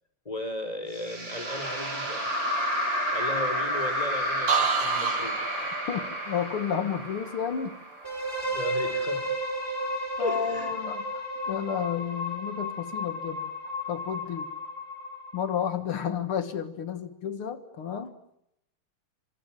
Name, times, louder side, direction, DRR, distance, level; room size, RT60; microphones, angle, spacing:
voice 1, 0.3-2.3 3.1-5.7 8.4-9.3 10.2-10.7, left 1 dB, 15° left, 8 dB, 5.2 m, -36 dB
sound 1, 0.9-8.2, equal, 55° right, 8.1 m, -30 dB
sound 2, 4.5-8.3 8.7-9.1, right 7 dB, 75° right, 2.8 m, -31 dB
voice 2, 5.9-7.8 10.2-14.5 15.3-18.1, left 8 dB, 75° left, 9 dB, 2.6 m, -32 dB
sound 3, 8.0-15.8, equal, 5° right, 6.4 m, -33 dB
28.5 x 26.0 x 7.6 m, 0.80 s
omnidirectional pair, 2.4 m